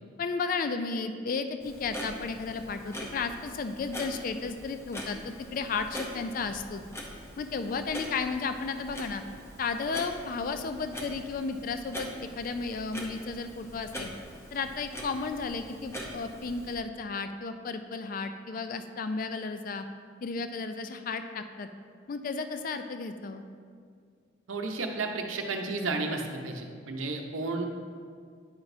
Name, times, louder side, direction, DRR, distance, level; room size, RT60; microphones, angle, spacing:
voice 1, 0.2-6.8 7.4-9.2 9.6-14.1 14.5-19.8 20.2-21.7 22.1-23.4, left 4 dB, 45° left, 8 dB, 0.3 m, -33 dB
Clock, 1.6-16.8, equal, 15° left, 0.6 m, -43 dB
voice 2, 24.5-27.7, right 3 dB, 80° right, 3 dB, 0.7 m, -32 dB
9.4 x 6.0 x 2.6 m, 2.1 s
head